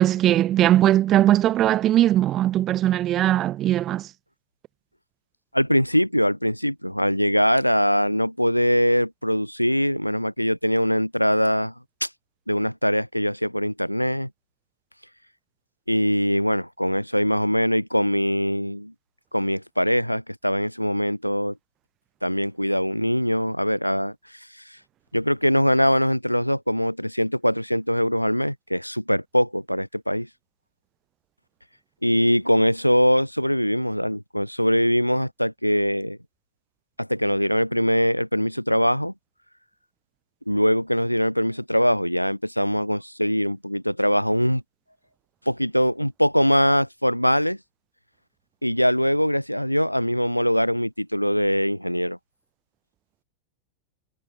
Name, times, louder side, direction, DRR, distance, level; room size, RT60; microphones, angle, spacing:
voice 1, 0.0-4.1, right 13 dB, 30° right, 0.8 m, -19 dB
voice 2, 5.5-11.7 12.0-12.1 12.5-14.3 15.9-18.9 19.3-21.5 22.2-24.1 25.1-30.3 32.0-36.2 37.0-39.1 40.5-44.6 45.5-47.6 48.6-52.2, equal, 90° left, 4.2 m, -22 dB
figure-of-eight pair, 90°, 0 cm